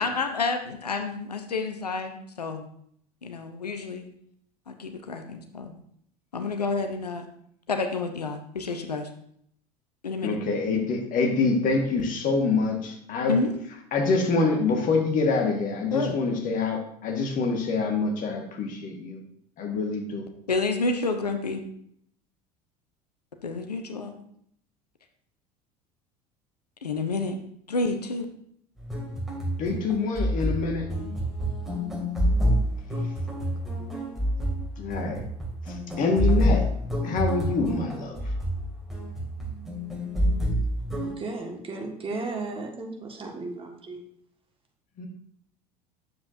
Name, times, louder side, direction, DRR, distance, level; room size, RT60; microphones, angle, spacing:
voice 1, 0.0-2.7 3.2-4.1 4.7-5.8 6.3-7.3 7.7-9.1 10.0-10.4 13.3-13.5 15.9-16.2 20.5-21.6 23.4-24.2 26.8-27.4 27.7-28.3, left 3 dB, 85° left, 6 dB, 0.7 m, -29 dB
voice 2, 10.2-13.3 13.9-19.2 19.6-20.3 29.6-30.9 34.8-35.2 35.7-36.7 37.0-38.2 45.0-45.1, left 4 dB, 45° left, 3 dB, 1.6 m, -26 dB
sound 1, 28.8-41.1, equal, ahead, 2.4 m, -28 dB
voice 3, 41.0-44.0, right 3 dB, 25° right, 1 dB, 1.6 m, -35 dB
9.4 x 7.3 x 2.6 m, 0.68 s
figure-of-eight pair, 70°, 20 cm